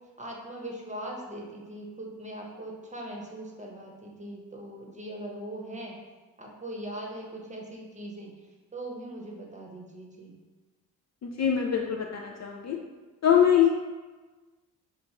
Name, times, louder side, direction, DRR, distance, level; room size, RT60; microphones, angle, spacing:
voice 1, 0.2-6.0 6.4-8.3 8.7-10.4, right 1 dB, 15° right, -1 dB, 0.8 m, -40 dB
voice 2, 11.2-12.8 13.2-13.7, left 9 dB, 45° left, 1 dB, 0.4 m, -23 dB
4.4 x 2.5 x 2.9 m, 1.3 s
supercardioid pair, 60°, 41 cm